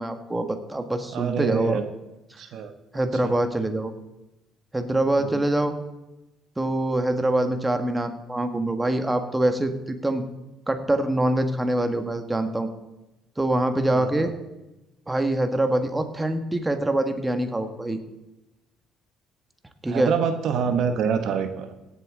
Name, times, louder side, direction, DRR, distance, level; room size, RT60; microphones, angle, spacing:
voice 1, 0.0-1.8 2.9-3.9 4.7-5.7 6.6-10.2 10.7-12.7 13.4-14.3 15.1-18.0 19.8-20.1, right 1 dB, 15° right, 7 dB, 1.6 m, -24 dB
voice 2, 1.1-1.8 2.4-2.7 3.2-3.3 5.2-5.4 13.9-14.3 19.9-21.8, right 7 dB, 65° right, 8 dB, 1.1 m, -26 dB
17.0 x 8.3 x 3.9 m, 0.98 s
supercardioid pair, 65°, 0 cm